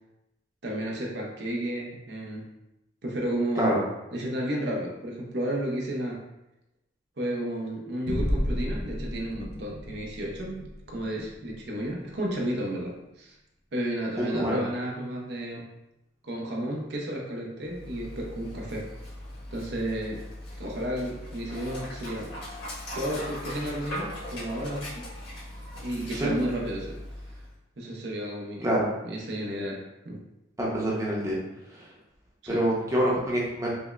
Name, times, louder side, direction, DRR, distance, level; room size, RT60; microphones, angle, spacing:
voice 1, 0.6-2.5 3.0-3.8 4.1-6.3 7.2-10.6 10.9-13.3 13.7-15.7 16.2-18.9 19.5-20.2 20.6-22.3 22.9-25.1 25.8-27.0 27.8-28.7 29.0-30.2 32.4-32.7, right 1 dB, 65° right, -1 dB, 0.6 m, -32 dB
sound 1, 8.1-12.9, equal, 55° left, 0.5 m, -33 dB
voice 2, 14.2-14.6 26.1-26.3 28.6-28.8 30.6-31.4 31.7-31.8 32.5-33.7, equal, 15° right, -4 dB, 0.7 m, -26 dB
Dog, 17.6-27.6, left 1 dB, 80° left, 1.4 m, -40 dB
5.1 x 2.1 x 2.3 m, 0.91 s
head